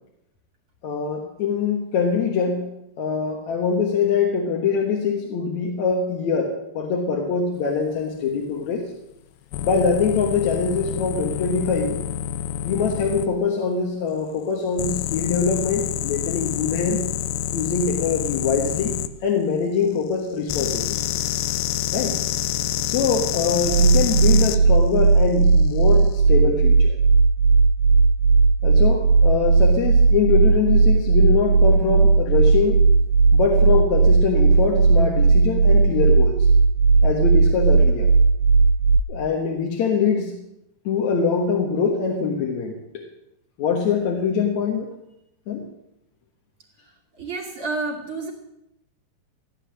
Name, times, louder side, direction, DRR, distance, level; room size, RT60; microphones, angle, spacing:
voice 1, 0.8-2.7 3.0-8.9 9.6-12.0 12.6-17.0 17.5-19.0 19.2-21.1 21.9-22.2 22.8-27.0 28.6-32.8 33.3-36.5 37.0-38.1 39.1-40.4 40.9-43.0 43.6-44.9 45.5-45.6, left 5 dB, 60° left, 0 dB, 2.5 m, -23 dB
sound 1, 9.5-13.3 14.8-19.1 20.5-24.6 25.8-26.1, left 10 dB, 80° left, 2.3 m, -27 dB
sound 2, 23.6-39.0, right 4 dB, 75° right, 2.7 m, -16 dB
voice 2, 47.2-48.3, right 3 dB, 45° right, 1 dB, 2.2 m, -29 dB
16.0 x 10.0 x 7.5 m, 0.84 s
omnidirectional pair, 4.1 m